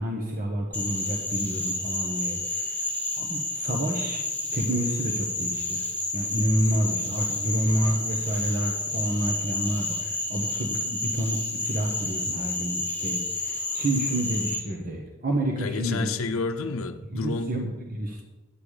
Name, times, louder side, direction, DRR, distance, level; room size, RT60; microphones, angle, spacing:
voice 1, 0.0-2.8 3.2-4.2 4.5-5.8 6.1-16.1 17.1-18.2, right 1 dB, 45° right, 1.3 m, -29 dB
Frog, 0.7-14.6, left 2 dB, 10° left, 1.9 m, -30 dB
voice 2, 15.6-17.5, left 4 dB, 85° left, 0.6 m, -30 dB
10.5 x 9.3 x 5.0 m
head